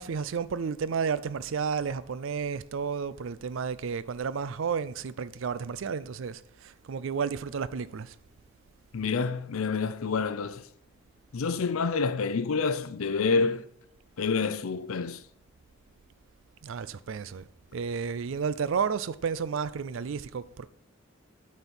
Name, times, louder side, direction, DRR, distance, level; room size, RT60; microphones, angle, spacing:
voice 1, 0.0-8.1 16.6-17.5 17.7-20.7, right 6 dB, 70° right, 0.4 m, -32 dB
voice 2, 8.9-10.7 11.3-13.7 14.2-15.2, left 4 dB, 85° left, 0.5 m, -28 dB
7.9 x 4.4 x 5.4 m
head